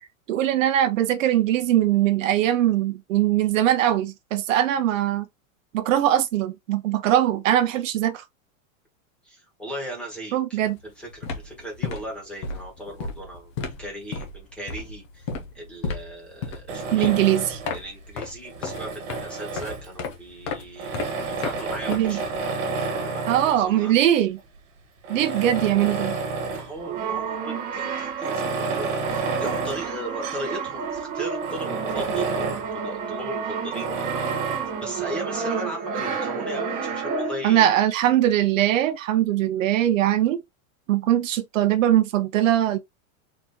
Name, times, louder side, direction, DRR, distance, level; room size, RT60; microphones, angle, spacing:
voice 1, 0.3-5.2 5.7-8.2 10.3-10.8 16.9-17.6 21.9-22.2 23.3-24.4 25.1-26.2 37.4-40.4 40.9-42.8, right 12 dB, 70° right, 0.8 m, -21 dB
voice 2, 9.2-15.3 15.5-17.1 17.7-20.9 21.3-22.2 23.0-23.9 26.5-33.9 34.8-37.9, right 1 dB, 5° left, 1.3 m, -37 dB
sound 1, 10.6-10.8 11.1-22.5, left 4 dB, 25° left, 0.4 m, -34 dB
Tools, 16.7-17.8 18.4-20.1 20.8-23.7 24.4-24.5 25.0-26.8 27.1-27.2 28.1-30.6 30.9-31.0 31.4-32.7 33.7-34.7, right 3 dB, 55° right, 1.4 m, -30 dB
Brass instrument, 26.8-37.6, right 6 dB, 20° right, 0.8 m, -30 dB
4.2 x 2.9 x 3.4 m
supercardioid pair, 175°, 41 cm